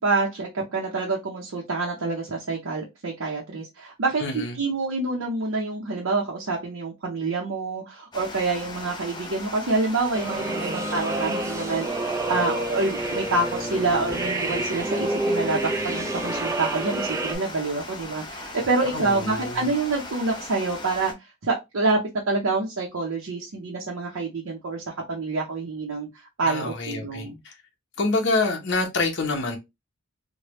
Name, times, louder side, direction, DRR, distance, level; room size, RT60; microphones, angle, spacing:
voice 1, 0.0-21.1 21.4-22.0 22.3-26.1 26.4-27.4, right 3 dB, 75° right, 0.7 m, -27 dB
voice 2, 4.2-4.5 18.9-19.7 26.4-27.5 28.0-29.6, left 3 dB, 55° left, 0.7 m, -26 dB
Water, 8.1-21.1, left 2 dB, 20° left, 0.7 m, -39 dB
sound 1, 10.1-17.4, right 2 dB, 15° right, 0.3 m, -28 dB
3.2 x 2.2 x 2.9 m
head